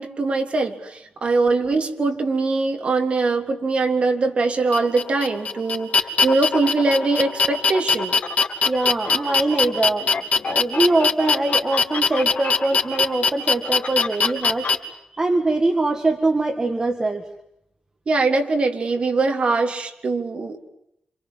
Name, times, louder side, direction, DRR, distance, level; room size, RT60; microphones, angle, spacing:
voice 1, 0.0-8.2 9.1-9.2 18.1-20.7, right 3 dB, 45° right, 4 dB, 3.3 m, -22 dB
sound 1, 4.7-14.7, left 5 dB, 55° left, 2.8 m, -21 dB
voice 2, 8.7-10.1 10.5-14.7 15.1-17.3, right 2 dB, 25° right, 5 dB, 1.9 m, -22 dB
28.5 x 27.0 x 7.5 m, 0.79 s
wide cardioid pair, 160°, 3 cm